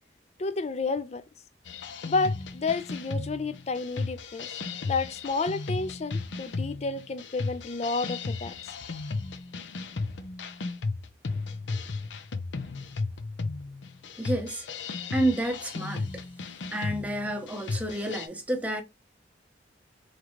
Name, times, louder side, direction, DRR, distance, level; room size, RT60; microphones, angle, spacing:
voice 1, 0.4-1.2 2.1-4.5 4.8-8.5, left 3 dB, 35° left, 0.4 m, -30 dB
sound 1, 1.7-18.3, left 3 dB, 75° left, 0.6 m, -35 dB
voice 2, 14.2-14.6 15.1-16.1 16.7-18.8, right 1 dB, 10° right, 0.8 m, -29 dB
3.7 x 3.2 x 3.1 m
head